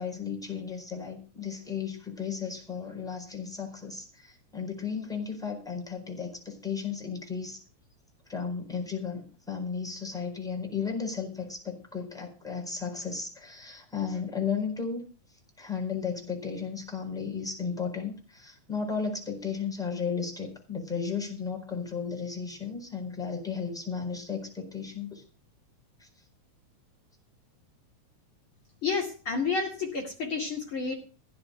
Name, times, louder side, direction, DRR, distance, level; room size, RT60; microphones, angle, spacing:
voice 1, 0.0-7.6 8.3-15.0 15.3-25.2 26.0-26.1, left 6 dB, ahead, -1 dB, 4.1 m, -34 dB
voice 2, 28.8-31.0, left 4 dB, 45° left, -1 dB, 3.0 m, -30 dB
15.5 x 5.2 x 9.7 m, 0.38 s
omnidirectional pair, 3.4 m